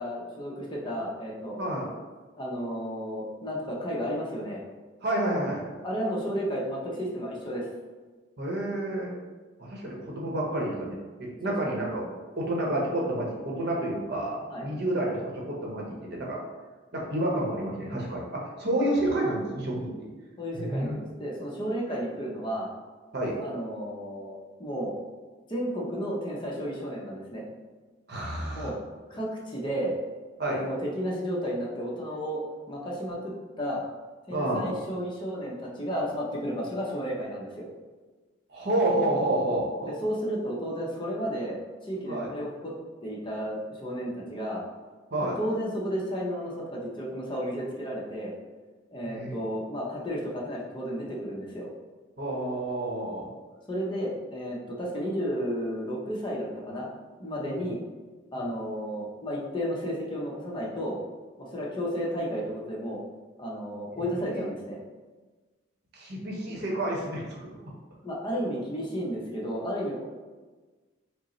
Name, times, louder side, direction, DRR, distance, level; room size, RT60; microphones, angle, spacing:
voice 1, 0.0-1.6 2.4-4.6 5.8-7.7 9.8-9.9 11.4-11.7 14.5-14.7 20.4-22.7 23.4-24.9 25.5-27.4 28.5-28.7 29.1-29.9 30.5-32.4 32.7-33.8 34.3-37.7 39.9-42.7 43.0-44.6 45.2-48.3 48.9-51.7 53.7-56.9 57.2-57.8 58.3-61.0 61.4-63.0 63.4-64.8 68.0-70.0, equal, 25° left, -3 dB, 0.6 m, -32 dB
voice 2, 5.0-5.6 8.4-9.1 9.6-12.1 12.4-16.4 16.9-20.1 20.5-21.0 23.1-23.4 28.1-28.7 30.4-30.6 34.3-34.7 38.5-40.0 42.1-42.3 45.1-45.4 49.1-49.4 52.2-53.3 57.4-57.7 58.4-58.5 64.3-64.4 65.9-67.5, right 1 dB, 55° right, -2 dB, 0.8 m, -29 dB
5.0 x 2.0 x 2.9 m, 1.3 s
head